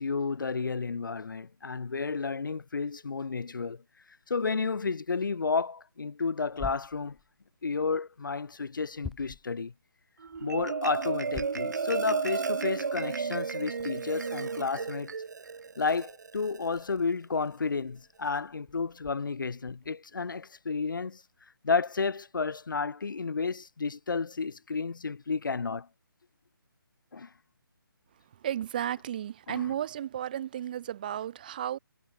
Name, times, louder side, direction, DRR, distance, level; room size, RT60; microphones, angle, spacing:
voice 1, 0.0-3.8 4.3-7.2 7.6-9.7 10.4-15.1 15.8-21.2 21.6-25.9 27.1-27.3 29.5-29.7, left 4 dB, 65° left, 2.0 m, -31 dB
sound 1, 6.5-7.6 8.2-9.7 10.2-11.8 12.2-12.3 12.9-13.0 13.7-19.9, left 5 dB, 5° left, 1.1 m, -48 dB
Marimba xylophone, 10.2-16.8, right 5 dB, 50° right, 1.3 m, -33 dB
voice 2, 28.4-31.8, right 11 dB, 25° right, 3.2 m, -33 dB
hypercardioid pair, 175°, 12 cm